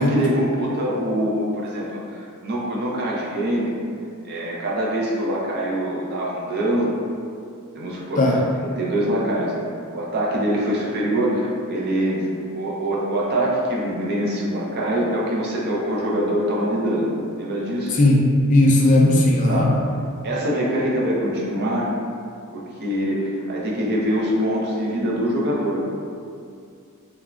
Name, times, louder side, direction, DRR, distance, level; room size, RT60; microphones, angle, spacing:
voice 1, 0.0-3.7 4.2-6.9 7.7-9.6 9.9-17.1 17.4-18.0 19.5-19.7 20.2-21.9 22.5-25.8, right 1 dB, 50° right, -4 dB, 0.5 m, -24 dB
voice 2, 17.9-19.7, left 1 dB, 35° left, -1 dB, 0.3 m, -16 dB
3.2 x 2.0 x 2.4 m, 2.3 s
head